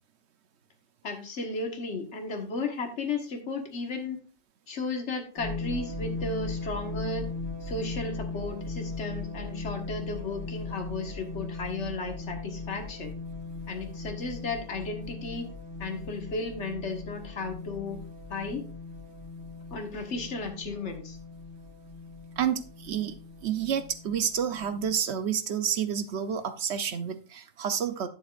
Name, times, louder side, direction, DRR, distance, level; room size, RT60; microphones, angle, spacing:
voice 1, 1.0-4.2 4.7-7.2 7.6-13.1 13.7-15.4 15.8-18.0 18.3-18.7 19.7-21.2, left 3 dB, 45° left, 4 dB, 1.7 m, -34 dB
sound 1, 5.4-24.9, left 3 dB, 75° right, 4.1 m, -38 dB
voice 2, 22.4-28.1, right 8 dB, 55° right, 10 dB, 0.8 m, -29 dB
11.5 x 7.3 x 2.5 m, 0.34 s
omnidirectional pair, 1.7 m